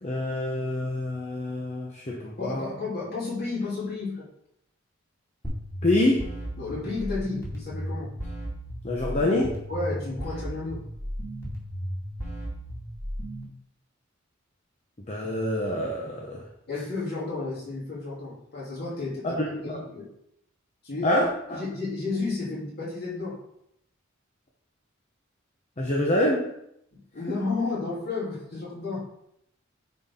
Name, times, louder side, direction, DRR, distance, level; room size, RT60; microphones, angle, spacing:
voice 1, 0.0-2.7 5.8-6.3 8.8-9.6 15.1-16.4 19.2-19.8 21.0-21.6 25.8-26.5, left 1 dB, 35° left, -1 dB, 0.9 m, -26 dB
voice 2, 2.4-4.3 6.6-8.1 9.7-10.8 16.7-20.1 20.8-21.2 21.5-23.4 27.1-29.1, left 3 dB, 55° left, -7 dB, 3.0 m, -32 dB
sound 1, 5.4-13.5, equal, 15° left, 2.3 m, -35 dB
9.3 x 4.2 x 3.7 m, 0.76 s
head